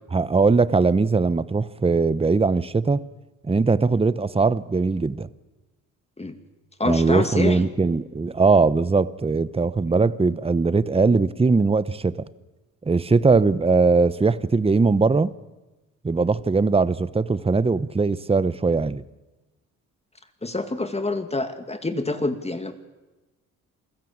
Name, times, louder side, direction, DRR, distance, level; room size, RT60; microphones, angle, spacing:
voice 1, 0.1-3.0 3.4-5.3 6.8-12.2 12.8-15.3 16.0-19.0, right 4 dB, 15° right, 0.9 m, -20 dB
voice 2, 6.8-7.7 16.2-16.3 20.4-22.7, left 2 dB, 20° left, 2.2 m, -27 dB
28.0 x 16.0 x 8.8 m
cardioid pair, 80°, 33 cm